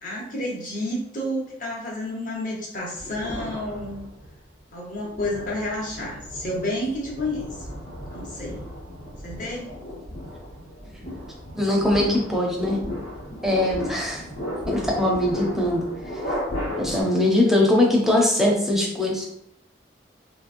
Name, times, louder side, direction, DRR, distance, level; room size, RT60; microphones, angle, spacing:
voice 1, 0.0-4.0 4.7-7.7 8.1-8.7 9.2-9.7, left 1 dB, 45° left, -3 dB, 0.8 m, -30 dB
sound 1, 3.0-4.4 4.9-17.0, equal, 85° left, 1.3 m, -34 dB
voice 2, 11.5-12.8 13.4-14.2 14.7-15.8 16.8-19.3, left 1 dB, ahead, -2 dB, 0.5 m, -21 dB
2.9 x 2.7 x 2.5 m, 0.75 s
head